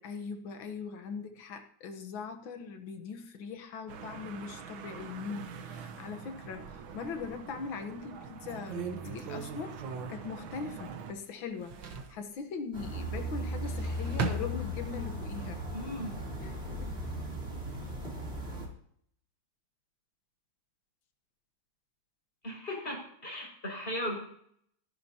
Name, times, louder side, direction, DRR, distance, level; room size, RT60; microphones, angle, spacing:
voice 1, 0.0-9.8 10.1-15.6 16.4-16.9, left 5 dB, 80° left, 7 dB, 2.0 m, -41 dB
sound 1, 3.9-11.1, right 6 dB, 90° right, 1.9 m, -45 dB
sound 2, 6.5-7.5 8.0-8.1 8.5-11.1 11.4-12.2 13.4-15.1 15.6-16.2, right 6 dB, 70° right, 1.9 m, -39 dB
sound 3, 12.7-18.7, left 1 dB, 30° right, 3.7 m, -37 dB
voice 2, 15.7-16.1 22.4-24.2, left 1 dB, 25° left, -1 dB, 6.0 m, -37 dB
28.5 x 11.0 x 2.9 m, 0.66 s
omnidirectional pair, 2.1 m